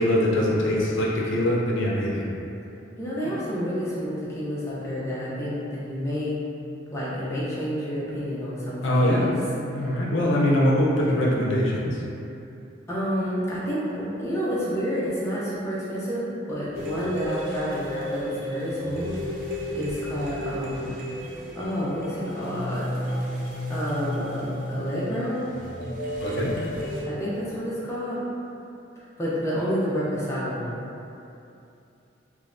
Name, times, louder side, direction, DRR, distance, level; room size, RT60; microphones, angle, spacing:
voice 1, 0.0-2.2 8.8-9.3 9.7-12.0 26.2-26.5, left 1 dB, 70° left, -4 dB, 0.4 m, -22 dB
voice 2, 3.0-6.4 6.9-9.3 9.8-9.9 12.9-19.2 19.8-20.9 21.6-22.9 23.7-25.5 27.1-28.2 29.2-30.8, equal, 15° left, -9 dB, 0.4 m, -29 dB
sound 1, 16.7-27.0, equal, 45° right, 0.5 m, -33 dB
3.1 x 2.1 x 2.5 m, 2.7 s
head